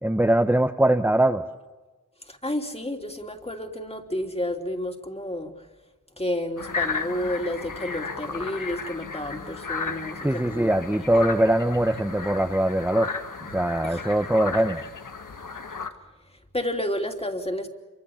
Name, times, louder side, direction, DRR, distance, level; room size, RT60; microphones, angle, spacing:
voice 1, 0.0-1.4 10.2-13.1 13.5-14.8, right 1 dB, 5° right, 5 dB, 1.0 m, -22 dB
voice 2, 2.3-5.5 6.2-10.7 11.0-11.1 13.8-14.0 14.4-14.5 16.5-17.7, left 1 dB, 20° left, 4 dB, 3.0 m, -31 dB
sound 1, 6.6-15.9, left 5 dB, 80° left, 1.6 m, -34 dB
27.0 x 24.0 x 7.2 m, 1.2 s
wide cardioid pair, 60°, 31 cm